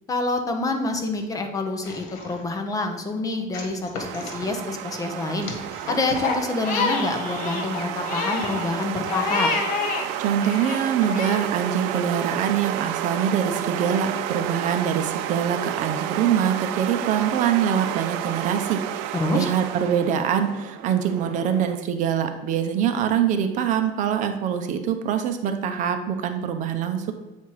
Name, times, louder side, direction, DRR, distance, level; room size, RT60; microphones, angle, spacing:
voice 1, 0.1-5.5 5.9-9.5 19.1-19.5, left 2 dB, 20° left, 4 dB, 0.7 m, -27 dB
sound 1, 1.8-2.6 3.5-4.5 5.4-6.3, left 3 dB, 85° left, 1.5 m, -37 dB
sound 2, 4.0-21.8, right 11 dB, 80° right, 0.5 m, -31 dB
Crying sobbing, 6.1-10.1 10.4-11.4, left 5 dB, 50° left, 1.0 m, -28 dB
voice 2, 10.2-27.1, right 8 dB, 45° right, 7 dB, 0.7 m, -24 dB
8.1 x 4.2 x 4.8 m, 1.1 s
cardioid pair, 160°, 18 cm